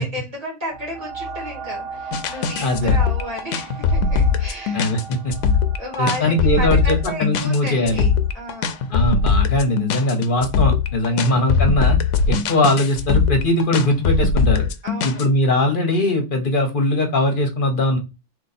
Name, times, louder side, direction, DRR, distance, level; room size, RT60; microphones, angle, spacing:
voice 1, 0.0-4.9 5.8-8.1 8.3-8.8 11.1-11.5 14.8-15.2, equal, 30° right, -2 dB, 1.9 m, -32 dB
sound 1, 0.7-10.0 10.6-10.7, right 5 dB, 60° right, 0.8 m, -38 dB
sound 2, 2.1-15.2, left 5 dB, 80° left, 0.9 m, -20 dB
voice 2, 2.6-3.0 4.7-5.3 6.0-8.0 8.9-12.0 12.3-14.6 15.0-18.0, left 1 dB, 50° left, 5 dB, 0.9 m, -20 dB
3.8 x 2.6 x 4.1 m, 0.26 s
omnidirectional pair, 1.3 m